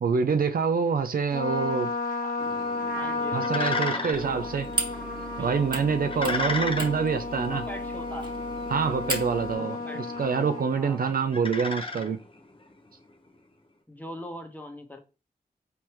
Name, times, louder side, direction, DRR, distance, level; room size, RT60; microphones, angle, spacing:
voice 1, 0.0-1.9 3.3-4.7 5.4-7.6 8.7-9.8 10.2-12.2, right 5 dB, 60° right, 0.4 m, -26 dB
Trumpet, 1.3-10.6, left 3 dB, 60° left, 1.3 m, -33 dB
sound 1, 2.4-12.7, left 3 dB, 30° left, 0.9 m, -36 dB
voice 2, 2.9-4.5 5.4-5.5 6.0-6.7 7.5-8.3 9.5-10.0 10.8-11.2 13.9-15.0, left 1 dB, 10° left, 1.1 m, -41 dB
sound 2, 4.1-9.5, right 3 dB, 30° right, 1.5 m, -37 dB
4.5 x 3.3 x 3.0 m
cardioid pair, 50°, 16 cm